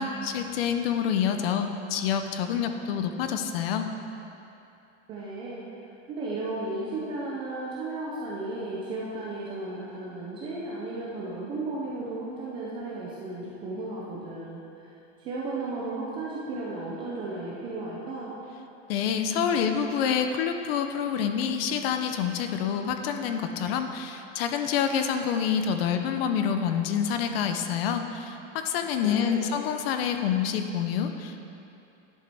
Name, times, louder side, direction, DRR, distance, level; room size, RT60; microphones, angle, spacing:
voice 1, 0.0-3.9 18.9-31.5, left 7 dB, 50° left, 7 dB, 0.6 m, -27 dB
voice 2, 5.1-14.9 15.2-18.3 29.0-29.5, right 2 dB, 15° right, -5 dB, 0.3 m, -34 dB
11.0 x 6.5 x 3.4 m, 2.8 s
supercardioid pair, 150°, 38 cm